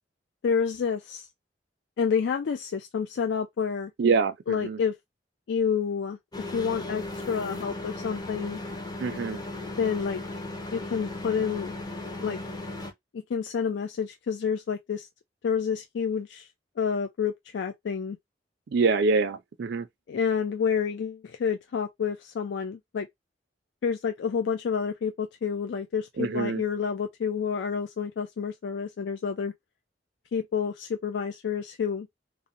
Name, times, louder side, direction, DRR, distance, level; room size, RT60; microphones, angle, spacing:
voice 1, 0.4-1.3 2.0-3.9 4.5-5.0 5.5-8.6 9.8-10.2 10.7-11.7 12.2-12.4 13.1-15.1 15.4-16.5 16.8-18.2 20.1-23.1 23.8-29.5 30.3-32.1, left 6 dB, 70° left, 0.3 m, -29 dB
voice 2, 4.0-4.8 9.0-9.4 18.7-19.9 26.2-26.6, right 4 dB, 65° right, 0.4 m, -25 dB
sound 1, 6.3-12.9, left 2 dB, 25° left, 0.6 m, -36 dB
2.7 x 2.1 x 2.5 m
head